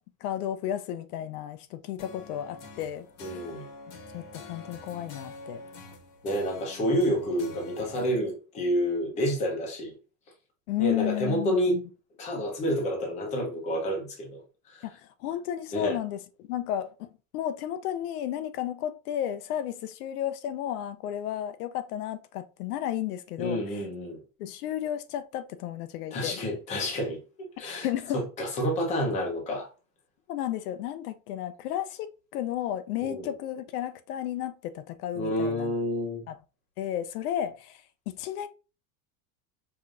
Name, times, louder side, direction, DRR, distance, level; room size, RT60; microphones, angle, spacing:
voice 1, 0.2-3.1 4.1-5.6 10.7-11.8 14.8-23.8 24.4-26.4 27.8-28.2 30.3-35.7 36.3-36.4 36.8-38.5, left 11 dB, 80° left, 0.6 m, -33 dB
sound 1, 2.0-8.1, left 3 dB, 55° left, 1.1 m, -46 dB
voice 2, 3.2-3.7 6.2-9.9 10.8-11.8 12.2-14.4 14.7-14.8 15.7-16.0 23.4-24.2 26.1-27.2 27.6-27.9 28.1-29.7 33.0-33.3 35.2-36.2, equal, 15° left, 0.7 m, -29 dB
4.9 x 2.7 x 2.4 m
supercardioid pair, 180°, 45 cm